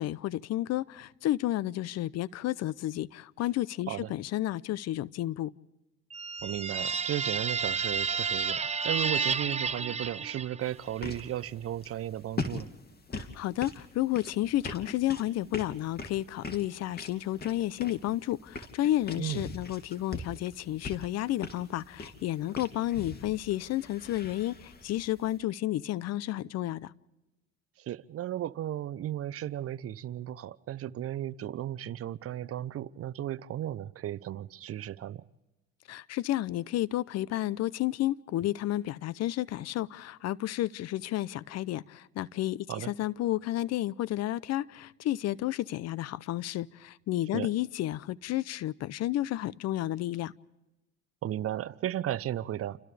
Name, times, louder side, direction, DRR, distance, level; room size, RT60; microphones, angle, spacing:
voice 1, 0.0-5.5 13.1-26.9 35.9-50.3, left 14 dB, 60° left, 0.8 m, -31 dB
sound 1, 6.1-10.8, right 5 dB, 20° right, 0.7 m, -31 dB
voice 2, 6.4-12.7 19.2-19.5 27.8-35.2 42.7-42.9 47.3-47.5 51.2-52.8, right 12 dB, 50° right, 0.8 m, -35 dB
sound 2, 10.6-25.4, left 3 dB, 35° left, 2.7 m, -42 dB
30.0 x 28.0 x 3.4 m
supercardioid pair, 70°, 29 cm